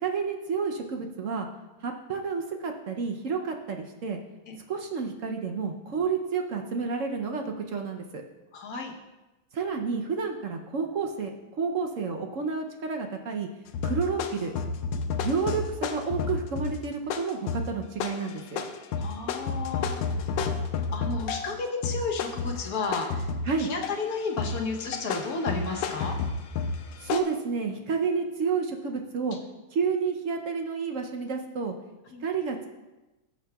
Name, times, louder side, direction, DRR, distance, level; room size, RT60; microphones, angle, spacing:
voice 1, 0.0-1.5 1.8-4.2 4.7-8.2 9.5-11.3 11.6-13.5 13.8-14.5 15.2-18.6 23.5-23.7 27.0-29.4 29.7-31.8 32.2-32.7, right 5 dB, 65° right, 3 dB, 0.8 m, -30 dB
voice 2, 8.5-8.9 19.0-20.0 20.9-23.3 23.6-26.2 32.1-32.2, left 4 dB, 55° left, 1 dB, 1.3 m, -32 dB
sound 1, 13.7-21.5 21.8-24.0 24.4-27.2, left 5 dB, 80° left, 1.3 m, -31 dB
sound 2, 19.8-20.2 22.0-23.2 23.5-23.8 25.3-27.1, left 1 dB, 20° left, 2.5 m, -51 dB
14.0 x 7.5 x 2.3 m, 1.1 s
omnidirectional pair, 2.1 m